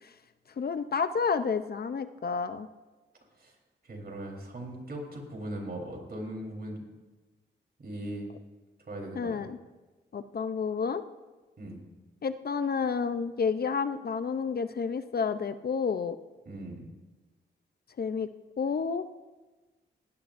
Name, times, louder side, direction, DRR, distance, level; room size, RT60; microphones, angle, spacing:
voice 1, 0.6-2.7 9.1-9.6 10.1-11.0 12.2-16.2 18.0-18.3 18.6-19.0, left 5 dB, 55° left, 11 dB, 0.6 m, -30 dB
voice 2, 3.8-6.8 7.8-8.3 8.9-9.4 11.6-11.8 16.5-16.8, right 1 dB, 55° right, 1 dB, 3.8 m, -39 dB
19.0 x 16.5 x 2.6 m, 1.2 s
cardioid pair, 90°, 20 cm